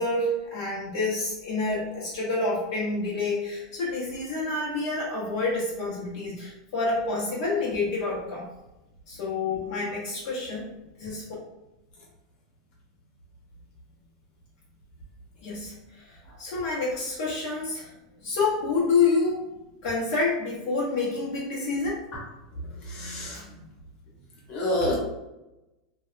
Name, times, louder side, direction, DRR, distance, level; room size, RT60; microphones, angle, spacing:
voice 1, 0.0-8.5 9.1-10.7 11.0-11.2 15.4-17.9 18.2-19.4 19.8-22.0 23.3-23.4, left 3 dB, 55° left, -6 dB, 0.7 m, -28 dB
voice 2, 22.9-23.4 24.5-24.9, left 1 dB, 35° left, -4 dB, 0.9 m, -27 dB
2.7 x 2.1 x 2.4 m, 0.98 s
supercardioid pair, 150°, 3 cm